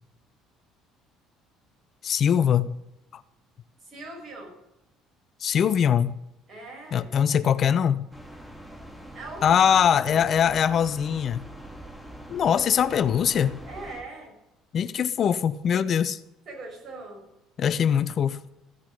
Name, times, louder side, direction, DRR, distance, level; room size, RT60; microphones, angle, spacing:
voice 1, 2.0-2.7 3.1-3.2 5.4-6.1 6.9-8.0 9.4-11.4 12.3-13.5 14.7-16.2 17.6-18.4, left 8 dB, 50° left, 0.6 m, -22 dB
voice 2, 3.8-4.6 6.5-7.1 9.1-10.3 13.7-14.4 16.5-17.3, right 2 dB, 45° right, 6.2 m, -40 dB
sound 1, 8.1-14.0, right 1 dB, 10° right, 2.3 m, -43 dB
15.0 x 5.8 x 9.7 m
hypercardioid pair, 55°, 0 cm